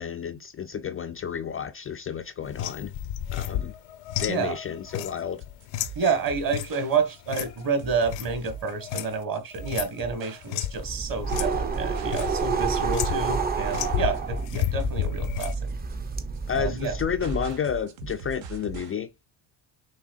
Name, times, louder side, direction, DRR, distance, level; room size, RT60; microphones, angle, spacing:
voice 1, 0.0-2.9 3.3-3.7 4.2-5.4 16.5-19.1, left 7 dB, 30° left, 0.4 m, -31 dB
sound 1, 2.4-9.2 9.5-10.8 11.3-11.5 11.8-12.4 12.9-13.4 13.7-15.6, left 12 dB, 80° left, 0.8 m, -32 dB
sound 2, 4.9-19.0, right 7 dB, 75° right, 1.2 m, -41 dB
voice 2, 5.9-15.7 16.6-17.0, right 5 dB, 45° right, 1.6 m, -29 dB
sound 3, 10.7-17.6, right 5 dB, 20° right, 0.6 m, -29 dB
6.3 x 3.4 x 2.4 m
cardioid pair, 110°, 46 cm